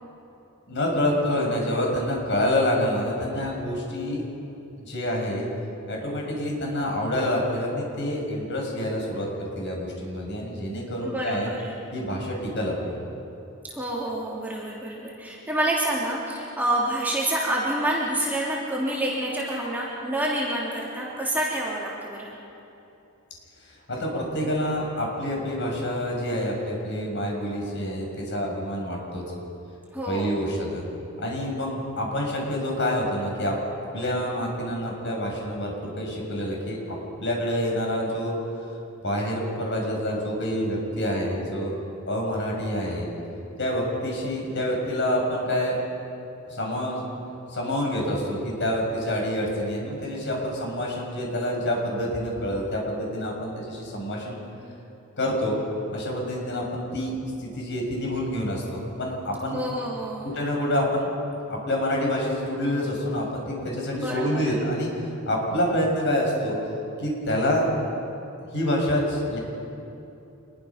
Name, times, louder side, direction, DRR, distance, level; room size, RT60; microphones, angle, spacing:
voice 1, 0.7-4.3 4.8-5.4 5.9-11.5 11.9-12.9 23.6-29.2 30.1-30.8 31.2-33.6 33.9-37.0 37.2-38.3 39.0-41.8 42.1-43.1 43.6-45.8 46.5-47.1 47.5-54.4 55.2-55.6 55.9-57.1 57.4-59.6 60.2-61.1 61.5-64.9 65.3-66.6 67.0-67.7 68.5-69.4, left 1 dB, 55° left, -1 dB, 6.3 m, -27 dB
voice 2, 11.0-11.7 13.6-22.4 29.9-30.4 59.5-60.3 63.9-64.5, right 1 dB, 10° right, -5 dB, 3.2 m, -28 dB
26.5 x 21.5 x 5.9 m, 2.9 s
head